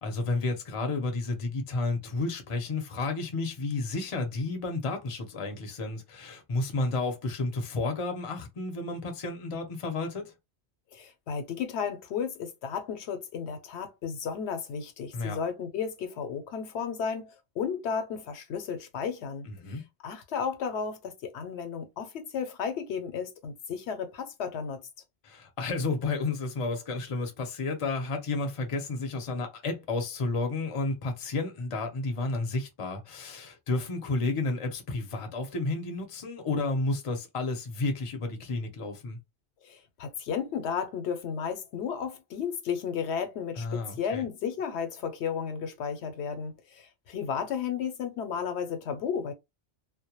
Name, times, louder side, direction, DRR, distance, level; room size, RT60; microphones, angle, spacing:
voice 1, 0.0-10.3 15.1-15.4 19.4-19.9 25.2-39.2 43.6-44.2, left 3 dB, 40° left, 0.6 m, -31 dB
voice 2, 10.9-24.9 39.6-49.3, left 7 dB, 80° left, 0.9 m, -33 dB
2.1 x 2.1 x 2.8 m
omnidirectional pair, 1.1 m